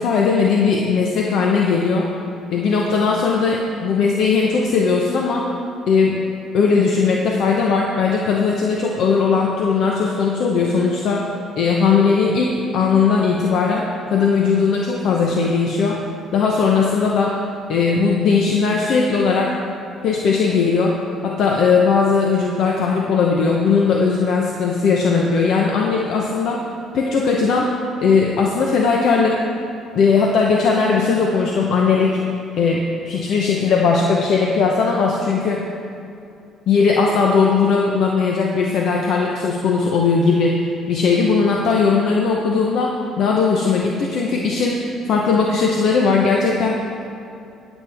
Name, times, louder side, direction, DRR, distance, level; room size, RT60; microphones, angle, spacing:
voice 1, 0.0-2.1 2.5-5.5 5.9-6.2 6.5-11.3 11.6-16.0 16.3-17.4 17.7-19.6 20.0-26.6 26.9-27.7 28.0-29.4 29.9-32.2 32.6-35.6 36.7-47.0, left 5 dB, 65° left, -1 dB, 0.8 m, -18 dB
20.5 x 7.3 x 3.5 m, 2.6 s
supercardioid pair, 80°, 0 cm